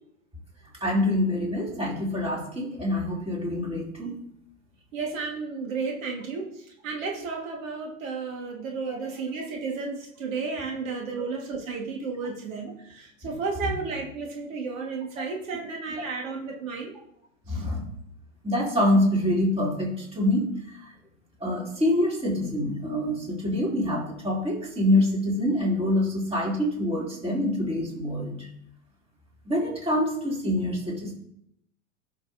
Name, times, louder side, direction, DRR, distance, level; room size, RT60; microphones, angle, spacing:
voice 1, 0.8-4.2 8.9-9.0 11.2-11.3 17.5-17.8 18.4-20.5 21.4-28.5 29.5-31.1, left 1 dB, 15° right, -3 dB, 3.0 m, -25 dB
voice 2, 4.9-16.9 17.5-17.6, right 4 dB, 70° right, 0 dB, 1.8 m, -33 dB
14.0 x 6.3 x 2.7 m, 0.74 s
hypercardioid pair, 105°, 41 cm